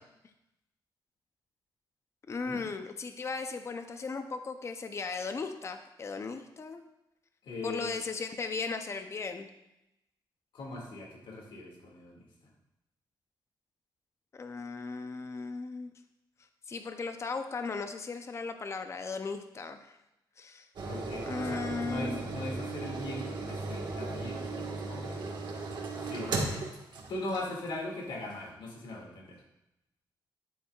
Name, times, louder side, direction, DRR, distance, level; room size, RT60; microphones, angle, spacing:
voice 1, 2.3-6.8 7.6-9.5 14.3-15.9 16.7-20.0 20.4-20.7 21.3-22.2, left 4 dB, 35° left, 7 dB, 0.6 m, -37 dB
voice 2, 7.4-8.0 10.5-12.2 20.8-25.2 26.0-29.4, left 2 dB, 85° left, 0 dB, 2.2 m, -40 dB
sound 1, 20.8-27.8 28.3-28.4, right 3 dB, 65° right, 1.5 m, -36 dB
10.0 x 8.3 x 2.4 m, 0.87 s
wide cardioid pair, 125°, 8 cm